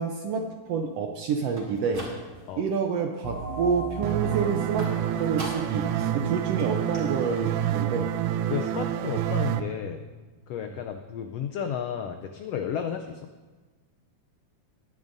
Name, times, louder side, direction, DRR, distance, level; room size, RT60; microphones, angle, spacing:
voice 1, 0.0-2.1 2.6-8.1, right 5 dB, 75° right, 4 dB, 1.5 m, -28 dB
sound 1, 1.5-2.6 3.0-3.5 4.8-5.9 6.2-6.3 6.6-6.7 6.9-7.0, right 1 dB, 30° right, 3.1 m, -41 dB
sound 2, 3.2-8.5, right 1 dB, 75° left, 3.6 m, -40 dB
sound 3, 4.0-9.6, right 11 dB, 90° right, 2.1 m, -28 dB
voice 2, 8.5-10.0 10.5-13.2, left 8 dB, 90° left, 6 dB, 1.4 m, -32 dB
20.5 x 10.5 x 2.6 m, 1.3 s
omnidirectional pair, 3.5 m